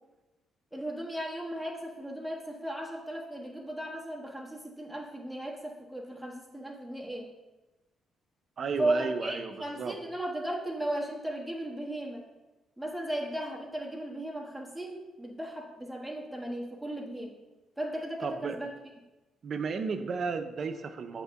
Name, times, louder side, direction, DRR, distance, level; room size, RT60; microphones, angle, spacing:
voice 1, 0.7-7.3 8.8-12.2 12.8-17.4 17.8-18.7, right 1 dB, ahead, -2 dB, 1.4 m, -36 dB
voice 2, 8.6-10.0 18.2-18.6 19.4-21.2, right 5 dB, 50° right, 8 dB, 0.6 m, -34 dB
7.1 x 3.7 x 5.7 m, 1.1 s
cardioid pair, 90°, 0 cm